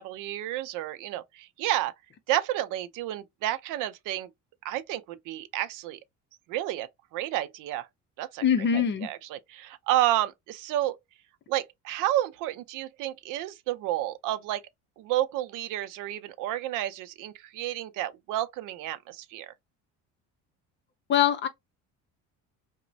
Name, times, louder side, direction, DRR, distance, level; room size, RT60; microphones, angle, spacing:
voice 1, 0.0-1.9 2.3-4.3 4.6-6.0 6.5-7.9 8.2-8.4 8.7-11.0 11.5-14.6 15.0-19.5, right 14 dB, 75° right, 0.6 m, -31 dB
voice 2, 8.4-9.1 21.1-21.5, left 8 dB, 35° left, 0.6 m, -23 dB
3.0 x 2.1 x 2.6 m
cardioid pair, 135°, 32 cm